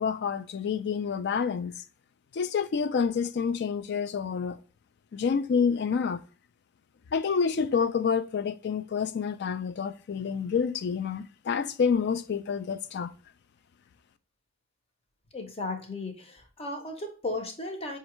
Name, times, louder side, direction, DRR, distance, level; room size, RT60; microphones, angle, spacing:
voice 1, 0.0-1.7 2.3-4.6 5.1-6.2 7.1-13.1, left 6 dB, 55° left, 0.3 m, -28 dB
voice 2, 15.3-18.0, left 2 dB, 30° left, 0.8 m, -35 dB
5.3 x 2.4 x 3.0 m
head